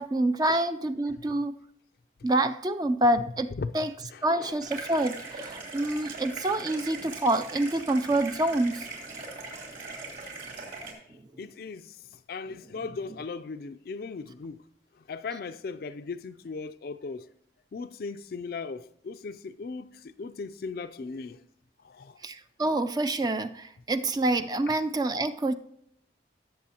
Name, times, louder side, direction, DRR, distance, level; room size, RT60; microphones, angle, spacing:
voice 1, 0.0-1.5 2.2-3.9 4.2-8.9 22.2-25.6, right 1 dB, 20° right, 0.3 m, -27 dB
voice 2, 4.1-4.6 10.2-10.3 11.4-14.6 15.1-17.3 17.7-21.4 21.8-22.2 24.7-24.8, left 4 dB, 55° left, 0.4 m, -38 dB
sound 1, 4.6-10.9, right 3 dB, 50° right, 3.2 m, -40 dB
18.0 x 7.6 x 2.8 m
head